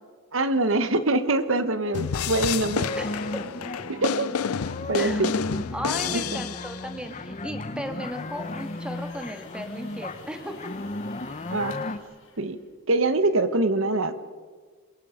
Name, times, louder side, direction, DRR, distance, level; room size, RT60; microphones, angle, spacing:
voice 1, 0.3-2.9 3.9-4.3 4.9-5.3 6.1-6.2 11.5-11.8 12.4-12.6 12.9-14.1, right 2 dB, 60° right, 11 dB, 1.3 m, -24 dB
sound 1, 1.9-7.0, left 7 dB, 85° left, 0.6 m, -30 dB
sound 2, 2.4-12.0, left 2 dB, 35° left, 0.9 m, -35 dB
voice 2, 3.0-3.4 4.9-5.3 5.7-10.6, equal, 5° right, 5 dB, 1.9 m, -36 dB
sound 3, 7.5-13.1, left 4 dB, 60° left, 3.2 m, -51 dB
27.5 x 22.5 x 5.2 m, 1.5 s
head